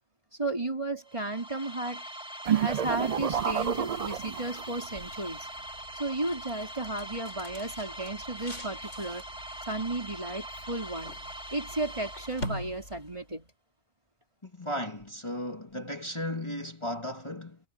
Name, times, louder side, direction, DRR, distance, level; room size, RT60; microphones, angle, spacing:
voice 1, 0.4-2.0 2.6-5.5 5.9-9.2 9.7-11.3 11.5-13.5, right 2 dB, 25° right, 4.0 m, -34 dB
sound 1, 1.0-12.9, right 1 dB, 5° right, 2.0 m, -43 dB
sound 2, 2.4-4.8, right 8 dB, 50° right, 0.5 m, -29 dB
sound 3, 3.1-13.4, equal, 90° left, 7.9 m, -45 dB
voice 2, 14.4-17.6, left 1 dB, 25° left, 2.2 m, -35 dB
omnidirectional pair, 1.2 m